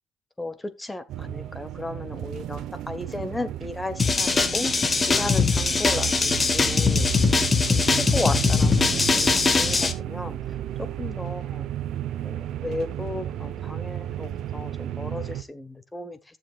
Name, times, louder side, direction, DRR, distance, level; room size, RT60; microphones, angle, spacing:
voice 1, 0.4-2.6 2.9-4.7 5.0-7.1 7.7-10.4 10.8-11.7 12.2-16.2, left 2 dB, 15° left, 1.5 m, -34 dB
sound 1, 1.1-15.4, right 11 dB, 85° right, 0.9 m, -33 dB
sound 2, 4.0-9.9, left 4 dB, 35° left, 1.4 m, -21 dB
15.5 x 7.4 x 2.4 m
cardioid pair, 90°, 0 cm